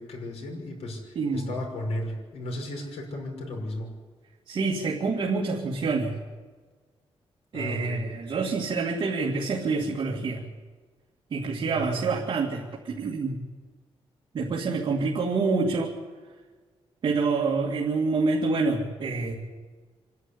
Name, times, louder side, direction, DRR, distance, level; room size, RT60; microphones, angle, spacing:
voice 1, 0.0-3.9 7.5-8.0 11.7-12.0, left 1 dB, 90° left, 1 dB, 5.9 m, -34 dB
voice 2, 1.2-1.6 4.5-6.2 7.5-10.4 11.3-13.4 14.3-15.9 17.0-19.3, right 4 dB, 50° right, -2 dB, 2.4 m, -27 dB
26.5 x 11.0 x 9.9 m, 1.4 s
wide cardioid pair, 155°, 10 cm